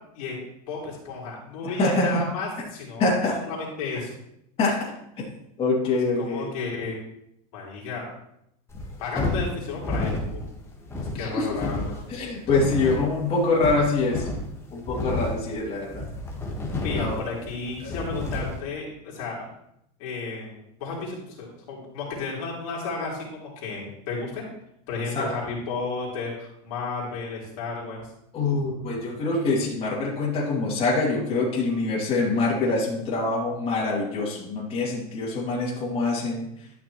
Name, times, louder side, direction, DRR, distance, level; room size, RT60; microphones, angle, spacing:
voice 1, 0.7-3.1 3.5-4.1 6.2-7.0 7.5-8.1 9.0-10.4 11.1-12.0 16.8-19.5 20.0-24.4 24.9-28.0, left 4 dB, 70° left, -4 dB, 3.1 m, -33 dB
voice 2, 1.6-2.2 3.0-3.4 4.6-4.9 5.6-6.5 11.1-11.6 12.1-14.3 14.7-16.0 17.0-17.2 17.8-18.0 25.1-25.3 28.3-36.5, left 3 dB, 30° left, -5 dB, 2.6 m, -25 dB
sound 1, 8.7-18.6, left 2 dB, 15° left, 1.5 m, -31 dB
11.5 x 6.1 x 3.1 m, 0.77 s
supercardioid pair, 130°, 19 cm